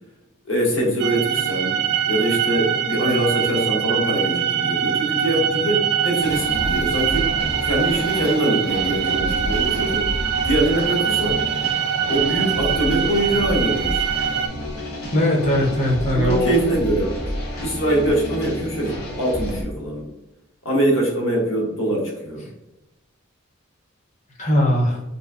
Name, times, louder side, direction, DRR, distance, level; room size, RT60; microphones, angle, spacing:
voice 1, 0.4-1.8 2.1-7.3 7.6-10.1 10.4-11.4 12.1-14.0 16.1-17.1 17.6-20.1 20.6-22.4, right 1 dB, 65° left, -1 dB, 0.9 m, -23 dB
sound 1, 1.0-14.5, right 8 dB, 55° right, 0.4 m, -23 dB
sound 2, 6.2-19.6, equal, 85° left, 1.0 m, -30 dB
voice 2, 15.1-16.5 24.4-25.0, left 1 dB, 35° left, 0 dB, 0.6 m, -19 dB
3.2 x 2.9 x 2.4 m, 0.98 s
head